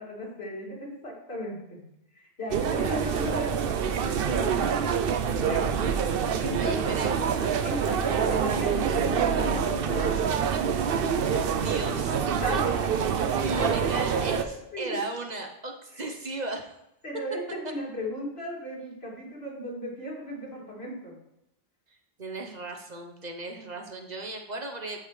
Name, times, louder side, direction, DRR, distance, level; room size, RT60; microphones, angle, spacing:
voice 1, 0.0-1.8 2.1-3.7 4.2-5.8 6.2-6.8 7.6-10.2 12.4-13.0 13.5-14.0 14.4-15.0 15.9-16.1 17.0-21.1, equal, 75° left, -4 dB, 2.9 m, -36 dB
sound 1, 2.5-14.4, right 7 dB, 65° right, 0.8 m, -26 dB
voice 2, 6.5-7.3 11.2-12.3 13.4-16.7 22.2-25.0, right 2 dB, 45° right, 3 dB, 1.0 m, -36 dB
13.5 x 5.4 x 3.2 m, 0.85 s
omnidirectional pair, 1.0 m